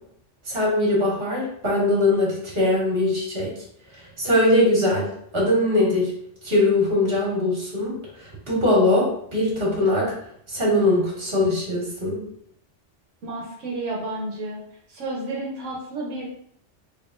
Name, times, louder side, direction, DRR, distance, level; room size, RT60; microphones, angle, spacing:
voice 1, 0.5-3.5 4.2-6.1 6.4-7.9 8.2-10.1 10.5-12.2, left 1 dB, 50° right, -5 dB, 1.9 m, -21 dB
voice 2, 13.2-14.6 14.9-16.2, right 2 dB, 90° right, -3 dB, 1.2 m, -31 dB
4.1 x 3.6 x 2.5 m, 0.69 s
omnidirectional pair, 1.2 m